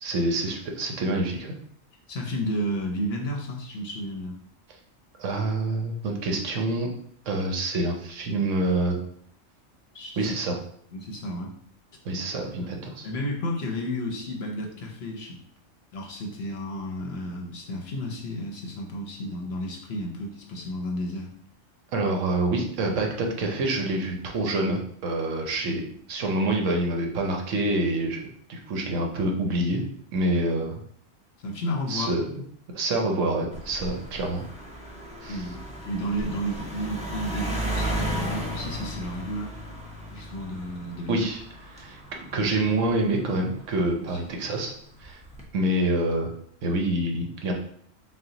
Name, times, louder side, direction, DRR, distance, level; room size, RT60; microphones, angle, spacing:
voice 1, 0.0-1.5 5.2-6.9 7.3-9.0 10.2-10.6 12.0-13.1 21.9-25.8 26.1-29.8 30.1-30.8 31.9-32.4 32.7-34.4 35.2-35.4 41.1-41.4 41.7-42.0 42.3-44.7 45.0-45.2 45.5-46.3 46.6-47.5, right 2 dB, 75° right, 2 dB, 1.1 m, -26 dB
voice 2, 2.1-4.4 9.9-10.3 10.9-11.5 12.3-12.4 12.6-15.4 15.9-21.3 25.7-25.9 31.4-32.2 35.3-39.5 40.1-41.3 44.0-44.2, equal, 60° left, 1 dB, 0.8 m, -32 dB
sound 1, 33.5-44.2 45.0-45.4, right 1 dB, 10° right, 0.4 m, -35 dB
4.2 x 2.2 x 3.8 m, 0.62 s
omnidirectional pair, 1.3 m